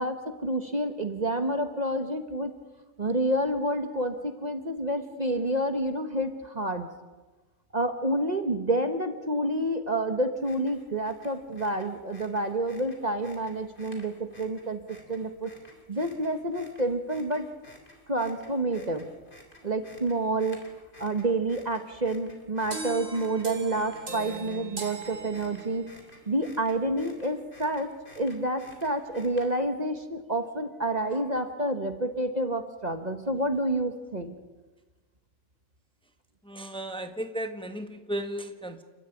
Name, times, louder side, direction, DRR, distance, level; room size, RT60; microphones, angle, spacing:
voice 1, 0.0-2.5 3.0-6.9 7.7-15.5 15.9-17.5 18.1-19.1 19.6-20.6 21.0-25.8 26.3-34.4, right 1 dB, 35° right, 7 dB, 1.4 m, -29 dB
sound 1, 10.3-29.8, left 1 dB, 40° left, 3.8 m, -54 dB
sound 2, 22.7-26.0, right 3 dB, 85° right, 3.1 m, -38 dB
voice 2, 36.4-38.8, right 1 dB, 5° left, 7 dB, 1.4 m, -35 dB
29.5 x 13.0 x 9.1 m, 1.2 s
omnidirectional pair, 1.3 m